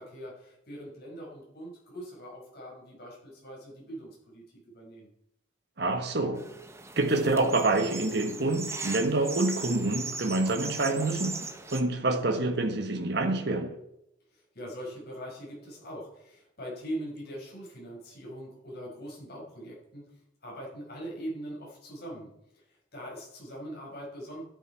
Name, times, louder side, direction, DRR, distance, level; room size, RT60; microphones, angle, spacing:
voice 1, 0.0-5.1 14.3-20.1 20.4-24.4, equal, 55° left, 5.4 m, -42 dB
voice 2, 5.8-6.5 7.0-13.8, right 2 dB, 60° right, 1.3 m, -27 dB
sound 1, 6.4-11.8, right 4 dB, 15° right, 0.9 m, -39 dB
13.0 x 9.0 x 4.6 m
head